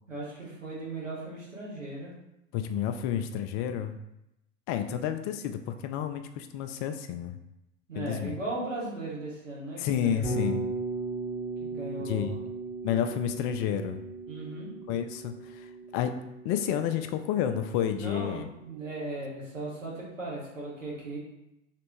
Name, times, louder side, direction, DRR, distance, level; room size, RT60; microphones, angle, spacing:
voice 1, 0.1-2.1 4.9-5.1 7.9-10.6 11.6-12.4 14.3-14.7 18.0-21.2, right 2 dB, 90° right, -5 dB, 1.5 m, -37 dB
voice 2, 2.5-4.0 4.7-7.4 8.0-8.4 9.8-10.7 12.0-12.4 12.8-14.0 14.9-16.2 16.4-18.5, left 9 dB, 40° left, 8 dB, 0.4 m, -30 dB
Bass guitar, 10.2-18.3, right 3 dB, 15° right, 1.3 m, -37 dB
3.3 x 3.2 x 3.0 m, 0.87 s
figure-of-eight pair, 85°, 37 cm